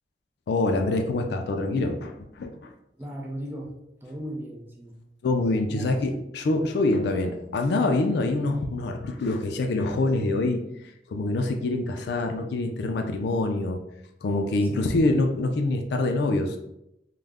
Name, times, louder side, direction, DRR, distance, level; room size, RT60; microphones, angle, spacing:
voice 1, 0.5-2.7 5.2-10.6 11.1-13.8 14.2-16.6, left 2 dB, 65° left, 4 dB, 0.3 m, -25 dB
voice 2, 2.9-3.7 4.0-5.0 5.7-6.0 14.6-14.9, equal, 10° right, -2 dB, 0.4 m, -37 dB
2.3 x 2.0 x 3.4 m, 0.84 s
head